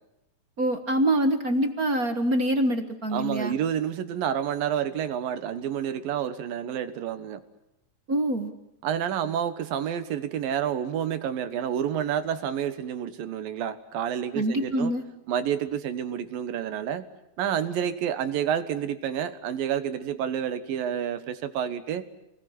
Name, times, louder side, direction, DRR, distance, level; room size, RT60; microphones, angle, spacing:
voice 1, 0.6-3.5 8.1-8.5 14.3-15.0, right 1 dB, 50° right, 7 dB, 1.0 m, -25 dB
voice 2, 3.1-7.4 8.8-14.9 15.3-17.0 17.4-22.0, right 9 dB, 75° right, 10 dB, 3.1 m, -29 dB
29.5 x 20.5 x 9.8 m, 0.85 s
omnidirectional pair, 4.1 m